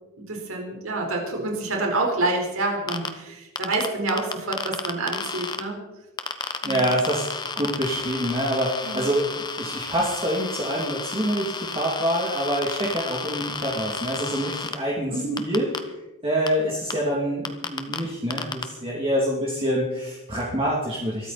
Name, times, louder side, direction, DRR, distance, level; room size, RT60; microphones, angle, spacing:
voice 1, 0.2-5.8 6.6-6.8 8.8-9.1 15.1-15.5, right 2 dB, 75° right, 1 dB, 4.5 m, -28 dB
sound 1, 2.9-3.1 3.6-5.6 6.2-14.7 15.4-15.8 16.5-16.6 16.9-17.0 17.4-18.0 18.3-18.6, left 4 dB, 20° left, 1.1 m, -31 dB
voice 2, 6.6-7.3 7.6-15.7 16.2-21.3, equal, 25° right, -4 dB, 2.7 m, -26 dB
23.5 x 13.0 x 4.3 m, 1.0 s
head